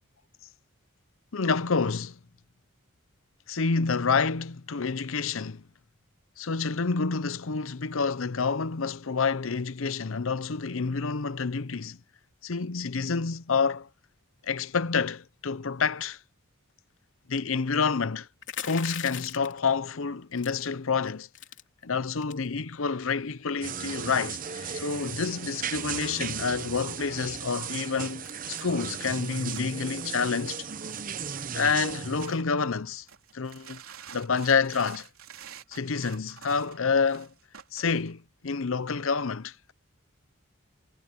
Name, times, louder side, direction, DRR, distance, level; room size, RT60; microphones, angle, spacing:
voice 1, 1.3-2.2 3.5-5.6 6.4-12.0 12.4-13.9 14.4-16.2 17.3-18.3 18.6-21.3 21.8-30.7 31.5-33.1 33.3-33.8 34.1-35.1 35.7-37.3 37.7-39.5, left 5 dB, 75° left, 0.7 m, -28 dB
sound 1, 18.4-19.6 20.4-20.7 21.0-21.1 21.3-21.6 22.2-22.5, left 9 dB, 60° left, 3.6 m, -38 dB
sound 2, 23.6-32.3, right 7 dB, 40° right, 0.8 m, -36 dB
sound 3, 28.2-32.7 33.1-38.1, right 7 dB, 85° right, 3.6 m, -49 dB
head